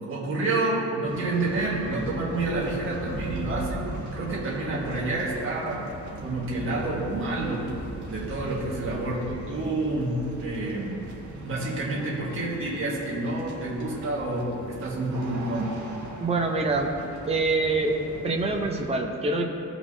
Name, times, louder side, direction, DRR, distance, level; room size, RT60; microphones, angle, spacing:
voice 1, 0.0-3.8 4.1-5.8 6.2-7.6 8.1-11.0 11.4-15.7, right 2 dB, 40° right, -6 dB, 1.7 m, -29 dB
sound 1, 1.0-18.9, right 1 dB, 65° right, 1.5 m, -38 dB
voice 2, 16.2-17.0 17.3-18.0 18.2-19.4, right 3 dB, 20° right, 2 dB, 0.6 m, -25 dB
15.5 x 5.9 x 2.7 m, 2.7 s
wide cardioid pair, 170°, 32 cm